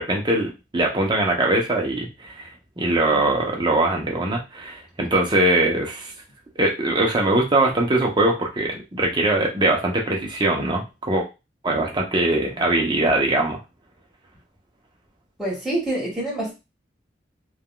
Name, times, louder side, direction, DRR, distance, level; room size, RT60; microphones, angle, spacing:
voice 1, 0.0-2.5 2.8-6.1 6.6-11.3 11.6-13.6, right 2 dB, 25° right, 0 dB, 0.7 m, -21 dB
voice 2, 2.8-3.2 15.4-16.5, right 1 dB, 5° right, -6 dB, 1.5 m, -27 dB
3.4 x 2.3 x 2.2 m, 0.27 s
head